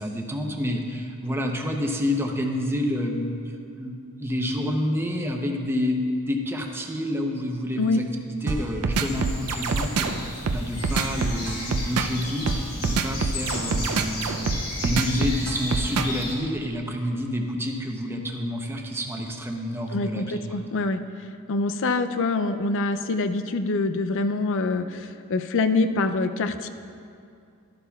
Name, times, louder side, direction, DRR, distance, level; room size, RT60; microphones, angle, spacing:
voice 1, 0.0-8.0 8.4-14.5 14.8-20.4, left 1 dB, 10° right, 2 dB, 0.7 m, -29 dB
sound 1, 8.5-16.2, right 4 dB, 85° right, 0.5 m, -25 dB
sound 2, 8.9-16.3, left 2 dB, 85° left, 2.3 m, -35 dB
voice 2, 19.9-26.7, left 3 dB, 60° left, 9 dB, 0.5 m, -25 dB
12.5 x 11.5 x 2.3 m, 2.5 s
head